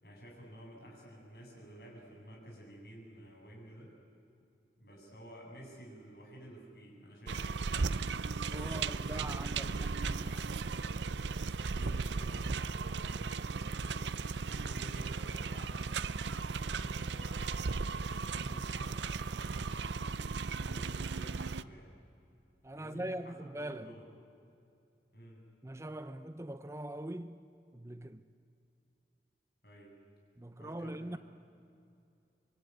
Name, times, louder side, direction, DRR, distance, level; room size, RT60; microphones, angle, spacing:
voice 1, 0.0-3.9 4.8-7.7 8.2-10.8 11.2-14.0 14.4-17.7 18.1-20.2 20.6-21.9 22.7-24.0 25.1-25.4 29.6-29.9 30.6-31.2, equal, 60° left, 7.9 m, -52 dB
sound 1, 7.3-21.6, right 4 dB, 90° right, 0.7 m, -36 dB
voice 2, 8.5-9.7 22.6-24.0 25.6-28.2 30.4-31.2, right 1 dB, 15° right, 0.6 m, -42 dB
25.5 x 23.0 x 9.6 m
head